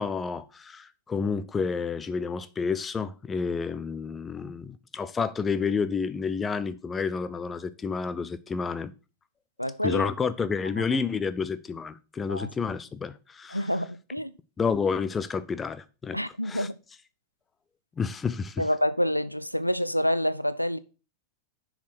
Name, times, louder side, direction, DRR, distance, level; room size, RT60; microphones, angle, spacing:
voice 1, 0.0-8.9 9.8-13.7 14.6-16.2 16.4-16.7 18.0-18.6, left 5 dB, 15° left, 0.6 m, -30 dB
voice 2, 9.6-10.1 10.8-10.9 12.3-12.5 13.5-14.3 16.1-16.8 18.6-20.8, equal, 90° left, 0.5 m, -27 dB
7.0 x 4.9 x 6.1 m
figure-of-eight pair, 90°, 0 cm